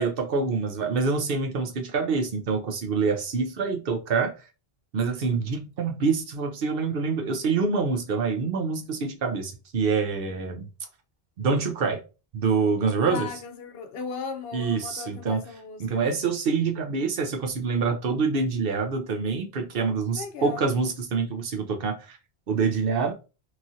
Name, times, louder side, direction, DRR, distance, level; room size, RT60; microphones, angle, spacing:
voice 1, 0.0-4.3 4.9-10.6 11.4-12.0 12.3-13.3 14.5-15.4 15.8-22.2 22.5-23.1, right 4 dB, 65° right, 0.8 m, -26 dB
voice 2, 13.1-16.1 20.1-20.7, left 5 dB, 70° left, 0.8 m, -37 dB
3.0 x 2.5 x 2.6 m
omnidirectional pair, 1.1 m